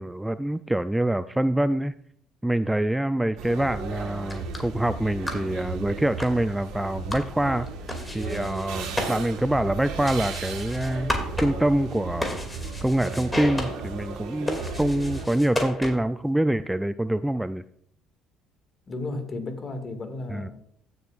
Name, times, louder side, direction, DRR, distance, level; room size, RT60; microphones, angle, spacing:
voice 1, 0.0-1.9 2.4-7.7 8.1-12.4 12.8-17.6 20.3-20.5, right 1 dB, 5° right, 13 dB, 0.3 m, -25 dB
sound 1, 3.4-15.3, right 4 dB, 70° right, 1.4 m, -35 dB
sound 2, 4.2-16.2, left 1 dB, 15° left, 2.4 m, -35 dB
voice 2, 18.9-20.5, left 2 dB, 40° left, 6 dB, 1.9 m, -33 dB
16.5 x 6.7 x 2.4 m, 0.65 s
hypercardioid pair, 65°, 0 cm